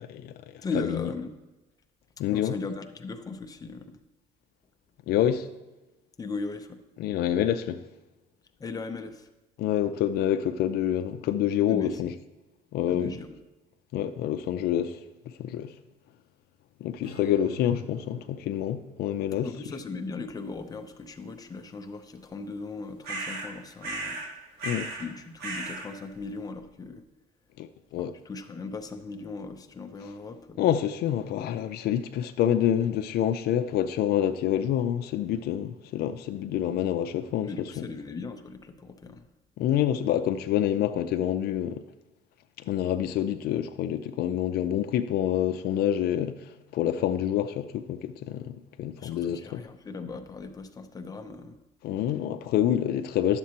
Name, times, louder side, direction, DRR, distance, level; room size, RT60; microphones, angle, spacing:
voice 1, 0.0-1.0 2.2-2.6 5.1-5.5 7.0-7.8 9.6-12.1 12.7-13.2 13.9-15.0 15.4-15.7 16.8-19.5 24.6-24.9 27.6-28.2 30.6-37.9 39.6-41.8 42.6-49.6 51.8-53.4, left 10 dB, 70° left, 0.4 m, -27 dB
voice 2, 0.6-1.3 2.3-4.0 6.2-6.8 8.6-9.3 11.7-12.1 12.9-13.3 19.4-24.2 25.0-27.0 28.0-30.6 37.4-39.2 49.0-51.6, left 3 dB, 20° left, 0.7 m, -38 dB
Strum, 17.0-22.4, right 4 dB, 35° right, 3.0 m, -53 dB
sound 1, 23.0-23.5 23.8-24.3 24.6-25.1 25.4-25.9, right 2 dB, 75° right, 1.4 m, -35 dB
10.5 x 7.4 x 2.9 m
cardioid pair, 110°, 17 cm